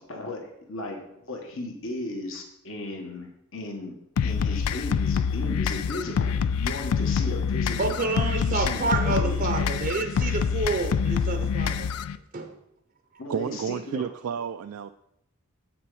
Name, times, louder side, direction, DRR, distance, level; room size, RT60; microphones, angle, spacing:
voice 1, 0.1-3.9 4.2-9.7 13.2-14.0, left 2 dB, 65° left, 1.3 m, -36 dB
sound 1, 4.2-12.2, left 6 dB, 90° left, 0.4 m, -26 dB
voice 2, 7.8-11.9 12.3-12.6, right 3 dB, 40° right, 0.6 m, -28 dB
voice 3, 13.3-14.9, right 7 dB, 80° right, 0.3 m, -31 dB
7.7 x 6.0 x 4.8 m
head